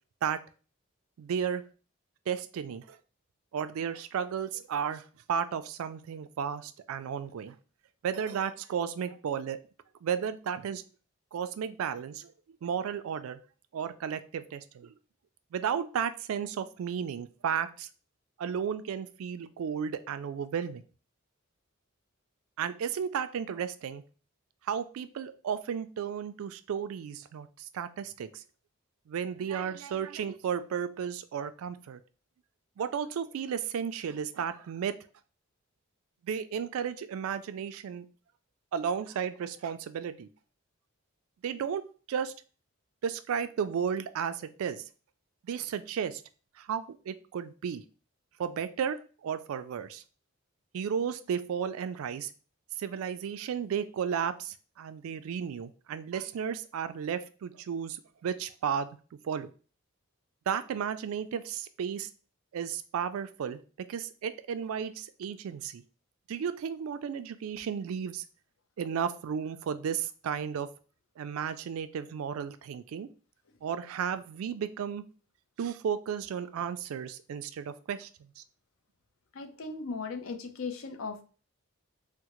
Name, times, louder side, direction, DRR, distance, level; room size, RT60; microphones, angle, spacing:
voice 1, 1.2-1.6 2.3-3.0 3.5-7.6 8.0-9.6 10.0-10.8 11.3-12.3 12.6-13.4 13.7-14.9 15.5-17.9 18.4-20.8 22.6-24.0 24.6-28.4 29.1-32.0 32.8-35.0 36.2-38.1 38.7-40.3 41.4-41.8 42.1-42.3 43.0-44.8 45.4-46.2 46.6-47.8 48.4-50.0 50.7-52.3 52.8-58.9 59.2-59.5 60.5-62.1 62.5-63.6 63.9-65.8 66.3-68.2 68.8-70.7 71.2-73.1 73.6-75.0 75.6-78.1 78.4-78.5, right 7 dB, 75° right, 12 dB, 0.3 m, -33 dB
voice 2, 79.3-81.2, left 4 dB, 70° left, 6 dB, 0.5 m, -37 dB
3.6 x 2.0 x 2.9 m, 0.38 s
head